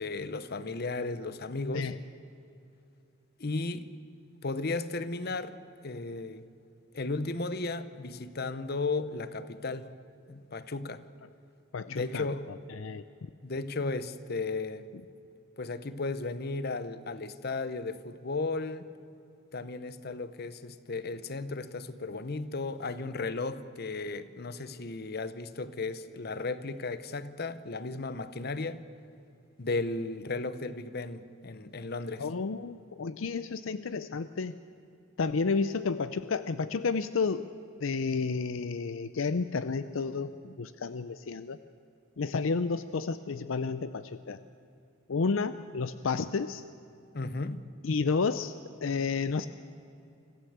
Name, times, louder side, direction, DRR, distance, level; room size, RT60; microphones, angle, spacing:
voice 1, 0.0-1.9 3.4-3.9 4.4-5.6 5.8-6.4 6.9-9.9 10.3-11.0 11.9-12.5 13.4-14.9 15.6-18.9 19.5-28.8 29.6-32.2 47.1-47.6, left 3 dB, 50° left, 0.9 m, -35 dB
voice 2, 11.7-12.2 12.7-13.1 32.2-34.5 35.2-37.5 37.8-41.6 42.2-44.4 45.1-46.6 47.8-49.5, left 4 dB, 70° left, 0.5 m, -31 dB
25.5 x 15.0 x 8.1 m
head